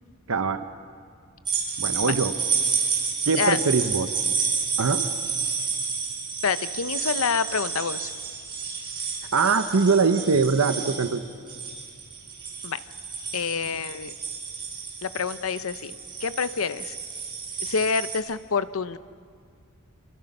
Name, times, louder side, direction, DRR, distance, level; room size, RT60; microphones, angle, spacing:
voice 1, 0.3-0.6 1.8-2.3 3.3-4.1 4.8-5.1 9.3-11.2, right 4 dB, 85° right, 9 dB, 0.8 m, -22 dB
sound 1, 1.5-18.2, right 5 dB, 20° right, 6.0 m, -30 dB
voice 2, 6.4-8.1 12.6-12.8 13.3-14.1 15.0-15.9 16.2-17.0 17.6-19.0, left 5 dB, 75° left, 14 dB, 0.7 m, -27 dB
27.5 x 24.5 x 5.4 m, 2.2 s
head